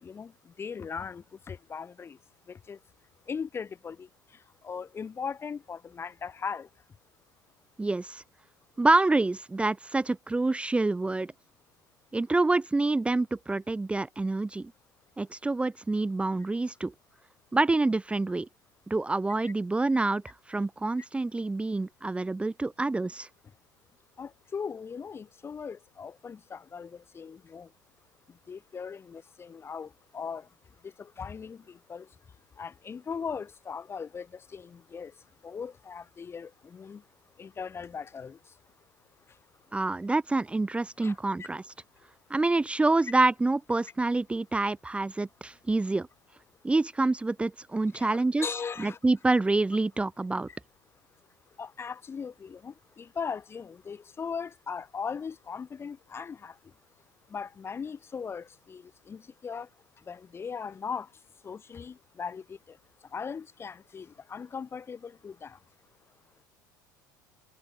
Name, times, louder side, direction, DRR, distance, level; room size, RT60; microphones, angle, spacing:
voice 1, 0.0-2.2 2.5-2.8 3.3-6.7 19.4-19.5 24.2-27.7 28.5-30.5 30.8-32.1 32.6-35.1 35.4-37.0 37.4-38.4 41.0-41.2 47.9-49.0 50.5-50.6 51.6-56.6 57.3-59.7 60.1-61.1 61.4-62.8 63.1-65.6, left 6 dB, 25° left, 1.0 m, -39 dB
voice 2, 7.8-8.2 8.8-11.3 12.1-14.7 15.2-16.9 17.5-18.5 18.9-20.2 20.5-23.3 39.7-41.6 42.3-46.1 46.6-48.5 48.8-50.5, right 2 dB, 10° right, 0.9 m, -27 dB
figure-of-eight pair, 70°, 10 cm